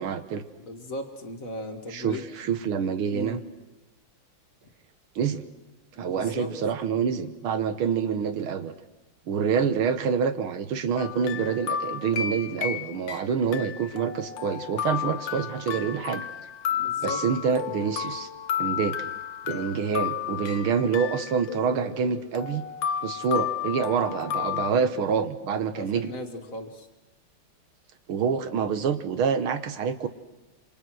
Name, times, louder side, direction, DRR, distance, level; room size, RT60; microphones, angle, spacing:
voice 1, 0.0-0.5 1.9-3.4 5.2-5.4 6.0-8.7 9.3-16.3 17.0-18.3 18.6-19.1 19.5-22.6 23.0-26.1 28.1-30.1, right 6 dB, 75° right, 11 dB, 2.1 m, -27 dB
voice 2, 0.6-2.2 3.1-3.4 6.0-6.6 16.7-17.2 24.2-24.9 25.7-26.9, left 1 dB, 40° left, 5 dB, 2.2 m, -37 dB
sound 1, 11.0-13.2 13.5-24.7, left 9 dB, 65° left, 1.7 m, -32 dB
27.5 x 26.0 x 6.4 m, 1.1 s
omnidirectional pair, 2.4 m